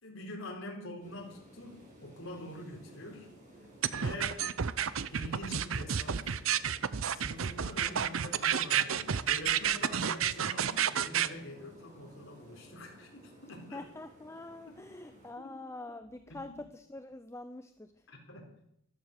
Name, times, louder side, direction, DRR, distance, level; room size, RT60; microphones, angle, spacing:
voice 1, 0.0-3.3 3.9-4.6 5.1-6.4 7.1-13.8 15.4-15.6 16.3-16.4 18.1-18.5, left 1 dB, 70° left, -1 dB, 4.2 m, -45 dB
sound 1, 1.0-15.3, right 1 dB, 35° right, 7.7 m, -56 dB
sound 2, 3.8-11.3, right 8 dB, 75° right, 0.7 m, -30 dB
voice 2, 13.7-18.1, left 2 dB, 15° left, 10 dB, 0.6 m, -45 dB
14.5 x 13.0 x 6.7 m, 0.73 s
head